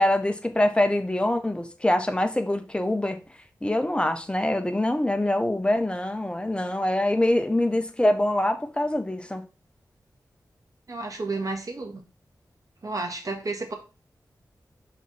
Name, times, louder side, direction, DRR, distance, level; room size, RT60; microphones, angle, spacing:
voice 1, 0.0-3.2 3.6-9.4, left 1 dB, 15° left, 7 dB, 1.0 m, -24 dB
voice 2, 10.9-12.0 12.8-13.7, right 3 dB, 55° right, 3 dB, 1.8 m, -31 dB
5.8 x 4.3 x 4.3 m, 0.32 s
cardioid pair, 55°, 7 cm